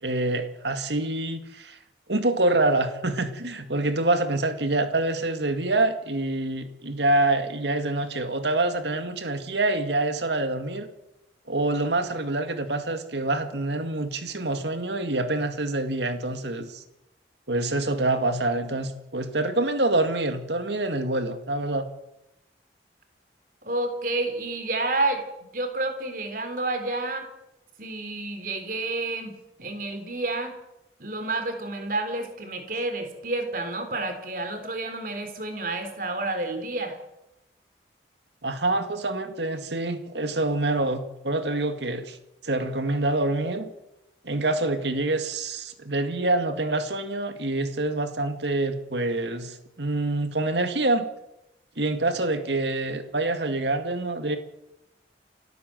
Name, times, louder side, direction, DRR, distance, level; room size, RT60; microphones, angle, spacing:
voice 1, 0.0-1.8 2.1-10.9 11.5-16.8 17.5-21.9 38.4-42.2 42.4-43.7 44.2-51.1 51.8-54.4, right 2 dB, 75° right, 8 dB, 2.2 m, -26 dB
voice 2, 23.6-25.2 25.5-27.3 27.8-30.5 31.0-37.0, right 2 dB, 50° right, 7 dB, 3.8 m, -29 dB
29.5 x 12.5 x 7.8 m, 0.90 s
head